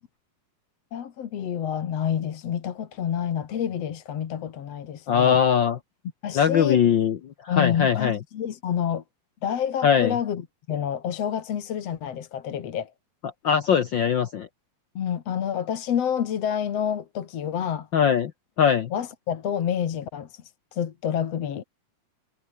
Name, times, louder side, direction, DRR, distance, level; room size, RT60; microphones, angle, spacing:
voice 1, 0.9-5.4 6.2-6.8 7.5-9.0 9.4-12.9 15.0-17.9 18.9-20.4 20.7-21.6, left 9 dB, 60° left, 2.6 m, -28 dB
voice 2, 5.1-5.8 6.3-7.2 7.4-8.2 9.8-10.1 13.4-14.5 17.9-18.3 18.6-18.9, left 8 dB, 75° left, 1.0 m, -21 dB
omnidirectional pair, 3.4 m